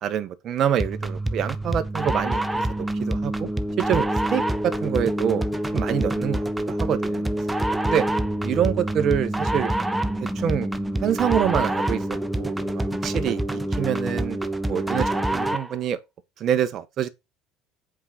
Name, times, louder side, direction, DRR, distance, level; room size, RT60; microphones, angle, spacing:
voice 1, 0.0-2.6 3.0-3.5 3.9-5.4 5.7-7.3 7.9-8.1 8.4-9.7 10.2-10.7 11.0-14.4 14.7-16.0 16.4-17.1, right 9 dB, 50° right, 1.4 m, -26 dB
sound 1, 0.8-15.7, right 1 dB, 10° right, 1.0 m, -26 dB
7.7 x 5.2 x 5.9 m
supercardioid pair, 105°, 0 cm